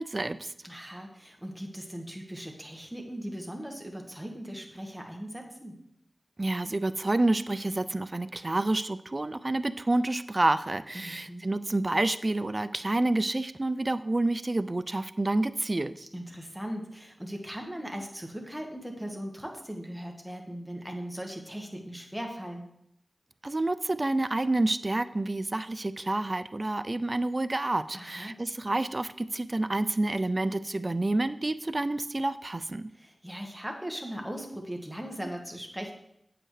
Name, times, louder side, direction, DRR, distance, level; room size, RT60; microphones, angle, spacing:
voice 1, 0.0-0.5 6.4-16.1 23.4-32.9, right 2 dB, 30° right, 13 dB, 0.4 m, -28 dB
voice 2, 0.6-5.8 10.9-11.5 16.1-22.7 27.9-28.4 32.9-35.9, equal, ahead, 2 dB, 1.3 m, -39 dB
8.7 x 7.9 x 3.2 m, 0.78 s
wide cardioid pair, 90°, 0 cm